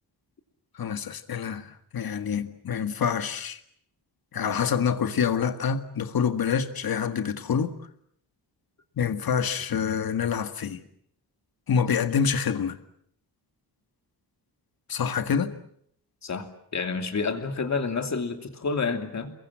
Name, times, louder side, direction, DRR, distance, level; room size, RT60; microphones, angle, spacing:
voice 1, 0.8-1.7 1.9-3.6 4.3-7.7 9.0-10.8 11.7-12.8 14.9-15.5, left 7 dB, 60° left, 9 dB, 1.9 m, -26 dB
voice 2, 16.2-19.3, left 4 dB, 40° left, 7 dB, 2.8 m, -29 dB
29.0 x 22.5 x 7.5 m, 0.68 s
wide cardioid pair, 165°, 40 cm